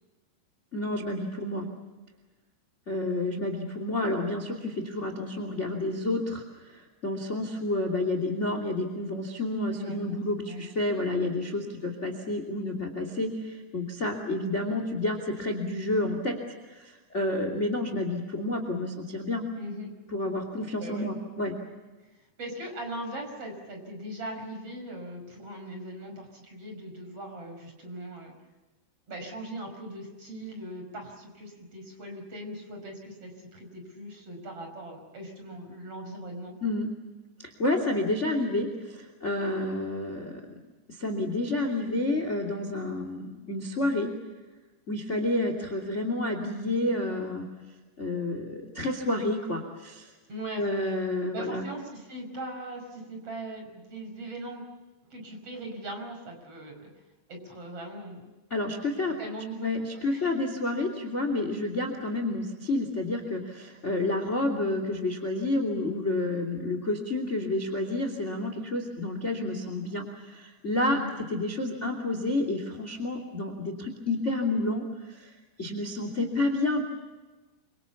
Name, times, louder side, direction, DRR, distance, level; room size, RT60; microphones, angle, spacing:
voice 1, 0.7-1.7 2.9-16.4 16.7-19.5 20.1-21.5 36.6-36.9 37.6-40.4 40.9-44.1 44.9-47.5 48.0-50.1 50.5-51.6 58.5-59.2 59.6-71.0 71.3-75.3 75.6-76.8, left 2 dB, 20° left, 5 dB, 2.2 m, -30 dB
voice 2, 19.6-19.9 20.8-21.1 22.1-28.3 29.1-36.5 50.3-50.7 51.3-54.6 55.1-56.9 57.3-58.3 59.0-59.7 60.0-60.3 70.7-71.1, right 1 dB, 30° right, 3 dB, 6.1 m, -40 dB
29.0 x 25.5 x 7.1 m, 1.2 s
omnidirectional pair, 5.4 m